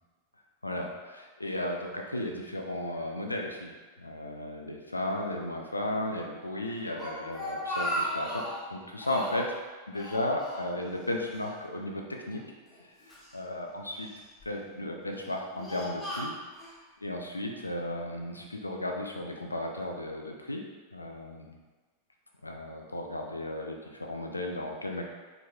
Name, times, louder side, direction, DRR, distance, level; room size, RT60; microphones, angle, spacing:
voice 1, 0.6-3.7 4.0-8.4 8.7-9.5 9.9-12.4 13.3-14.1 14.5-16.3 17.0-20.6 20.9-21.6 22.4-25.0, left 1 dB, 80° left, 1 dB, 0.5 m, -34 dB
Speech, 7.0-8.7 9.0-9.6 9.9-11.1 11.3-11.5 12.3-13.3 14.0-14.4 15.1-16.7, equal, 15° left, 1.4 m, -36 dB
4.5 x 4.0 x 2.3 m, 1.3 s
figure-of-eight pair, 90°, 0 cm